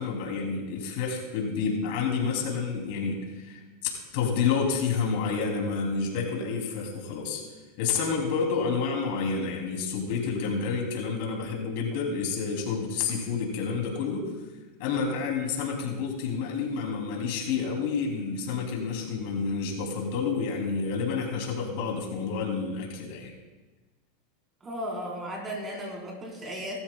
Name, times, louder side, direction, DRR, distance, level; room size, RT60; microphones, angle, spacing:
voice 1, 0.0-7.4 7.8-14.3 14.8-23.3, left 5 dB, 65° left, 0 dB, 2.7 m, -29 dB
voice 2, 24.6-26.8, equal, 20° right, -1 dB, 3.8 m, -35 dB
19.5 x 12.5 x 2.2 m, 1.2 s
supercardioid pair, 135°, 0 cm